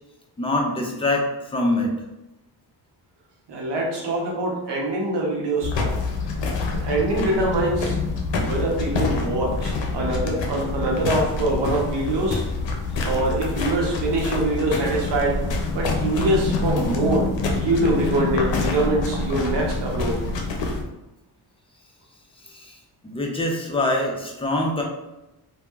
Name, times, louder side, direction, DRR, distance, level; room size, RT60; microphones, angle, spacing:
voice 1, 0.4-1.3 1.5-1.9 22.5-22.7 23.0-24.8, left 2 dB, 15° left, 0 dB, 0.5 m, -24 dB
voice 2, 3.5-6.0 6.7-8.0 8.4-12.4 13.0-15.4 15.7-17.3 17.5-20.2, right 2 dB, 70° right, -2 dB, 0.9 m, -24 dB
sound 1, 5.6-20.8, left 3 dB, 85° left, 0.6 m, -26 dB
2.8 x 2.2 x 2.3 m, 0.97 s
cardioid pair, 90°, 43 cm